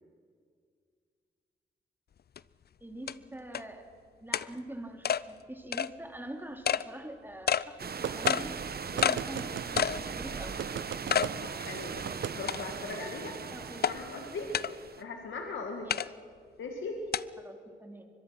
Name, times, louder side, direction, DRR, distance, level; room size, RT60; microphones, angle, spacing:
sound 1, 2.4-2.5 3.1-3.2 3.5-3.6 4.3-4.5 5.0-5.2 5.7-5.9 6.6-6.8 7.5-7.6 8.3-8.4 9.0-9.2 9.8-10.0 10.4-10.5 11.1-11.3 11.7-11.8 12.5-12.9 13.8-13.9 14.5-14.7 15.9-16.1 17.1-17.2, left 8 dB, 55° left, 0.5 m, -28 dB
voice 1, 2.8-3.9 4.2-8.6 8.9-10.6 13.4-13.8 15.8-16.0 17.4-18.1, right 1 dB, 10° right, 4 dB, 3.0 m, -44 dB
sound 2, 7.8-15.0, right 6 dB, 50° right, 1.2 m, -39 dB
sound 3, 8.0-8.4 9.0-9.9 10.6-11.3 12.0-12.4, right 9 dB, 75° right, 0.7 m, -36 dB
voice 2, 11.4-13.4 13.9-14.5 15.0-15.9 16.6-17.0, left 4 dB, 80° left, 2 dB, 2.2 m, -39 dB
24.5 x 22.0 x 6.0 m, 2.2 s
cardioid pair, 75°, 20 cm